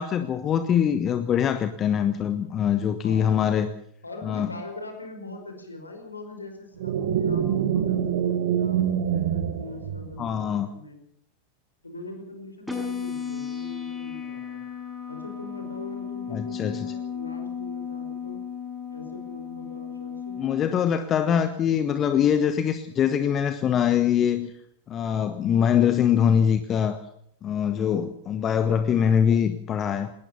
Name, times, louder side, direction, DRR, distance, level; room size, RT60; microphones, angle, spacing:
voice 1, 0.0-3.7 4.2-4.5 10.2-10.7 16.3-16.8 20.4-24.5 24.9-27.0 27.4-30.1, left 8 dB, 30° left, 11 dB, 1.2 m, -23 dB
voice 2, 4.0-11.0 11.8-14.6 15.1-18.4 18.9-20.5, left 2 dB, 80° left, 5 dB, 5.2 m, -42 dB
sound 1, 6.8-10.5, right 9 dB, 55° right, 2.0 m, -25 dB
sound 2, 12.7-20.7, left 7 dB, 5° left, 6.2 m, -34 dB
20.0 x 19.0 x 6.9 m, 0.69 s
figure-of-eight pair, 90°, 0 cm